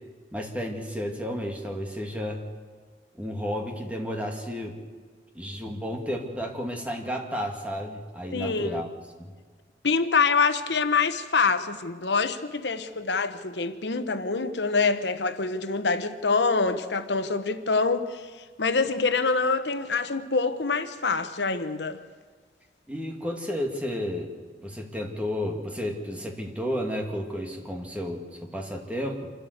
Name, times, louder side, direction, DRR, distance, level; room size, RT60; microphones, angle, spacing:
voice 1, 0.3-2.4 3.2-4.8 5.3-8.9 9.2-9.3 22.9-24.3 24.6-29.3, equal, 10° right, 2.2 m, -32 dB
voice 2, 8.3-8.8 9.8-18.3 18.6-22.0, left 4 dB, 80° left, 1.0 m, -25 dB
27.0 x 12.5 x 8.0 m
head